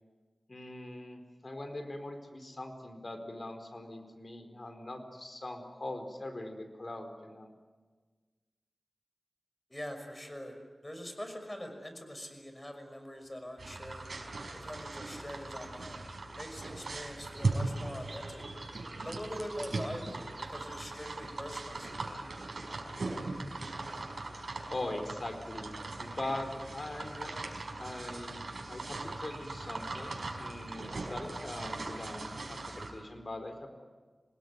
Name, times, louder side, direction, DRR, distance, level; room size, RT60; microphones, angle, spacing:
voice 1, 0.5-7.5 24.7-25.7 26.0-33.7, left 1 dB, 50° left, 6 dB, 4.4 m, -42 dB
voice 2, 9.7-10.6 10.8-14.1 14.5-16.0 16.3-18.4 19.0-22.2, equal, 20° left, 6 dB, 5.9 m, -43 dB
sound 1, 13.3-21.5, right 2 dB, 40° right, 5.5 m, -57 dB
sound 2, 13.6-32.9, right 3 dB, 70° right, 5.2 m, -39 dB
27.0 x 20.0 x 9.5 m, 1.4 s
wide cardioid pair, 60°, 0 cm